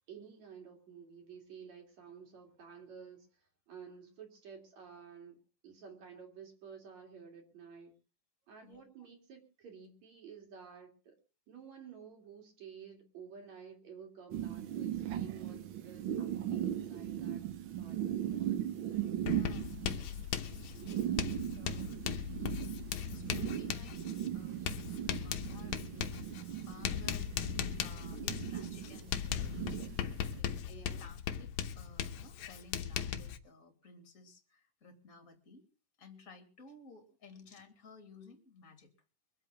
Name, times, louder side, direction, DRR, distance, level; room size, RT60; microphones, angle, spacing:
voice 1, 0.1-8.0 8.5-11.2 11.5-18.7 30.7-31.1, right 6 dB, 60° right, 3 dB, 4.2 m, -52 dB
sound 1, 14.3-30.4, right 11 dB, 75° right, 1.1 m, -38 dB
voice 2, 19.2-19.8 21.1-22.0 22.9-24.8 25.1-29.8 30.3-35.6 36.0-38.9, left 4 dB, 25° left, 6 dB, 3.1 m, -56 dB
Writing, 19.3-33.4, left 9 dB, 70° left, 2.2 m, -38 dB
24.0 x 8.1 x 5.7 m, 0.36 s
omnidirectional pair, 3.6 m